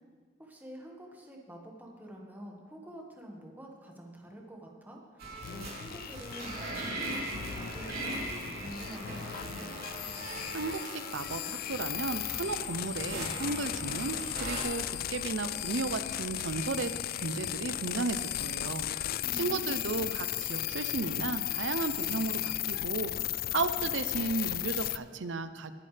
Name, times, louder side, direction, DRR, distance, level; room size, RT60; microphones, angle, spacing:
voice 1, 0.4-5.0 5.5-9.8 19.2-20.1, right 1 dB, 10° right, -1 dB, 1.7 m, -47 dB
sound 1, 5.2-14.6, right 1 dB, 55° right, 3.4 m, -40 dB
sound 2, 5.4-25.0, left 13 dB, 50° left, 0.3 m, -36 dB
voice 2, 10.5-14.8 15.1-16.9 17.2-18.9 19.3-23.1 23.5-25.7, right 3 dB, 75° right, 11 dB, 0.6 m, -34 dB
20.5 x 9.9 x 3.4 m, 1.5 s
head